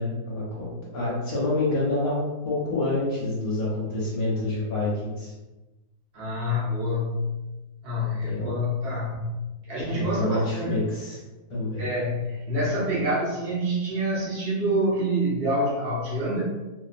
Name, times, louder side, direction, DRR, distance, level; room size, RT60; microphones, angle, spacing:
voice 1, 0.0-5.3 8.3-8.5 9.8-11.2 11.5-11.9, left 2 dB, 65° left, -7 dB, 1.2 m, -27 dB
voice 2, 6.1-7.4 7.8-10.8 11.8-16.4, equal, 45° right, -8 dB, 0.8 m, -27 dB
2.9 x 2.0 x 2.4 m, 1.1 s
omnidirectional pair, 1.8 m